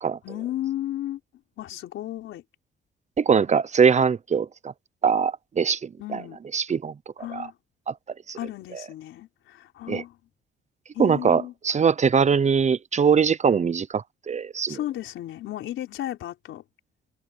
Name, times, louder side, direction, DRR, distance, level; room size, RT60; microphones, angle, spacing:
voice 1, 0.2-1.2 1.6-2.4 6.0-6.4 7.2-7.6 8.3-10.2 10.9-11.5 14.7-16.6, left 13 dB, 80° left, 4.2 m, -34 dB
voice 2, 3.2-4.5 5.0-6.2 6.5-6.9 7.3-7.5 7.9-8.0 8.3-8.4 9.9-10.0 11.0-14.8, right 6 dB, 35° right, 0.8 m, -22 dB
cardioid pair, 90°, 20 cm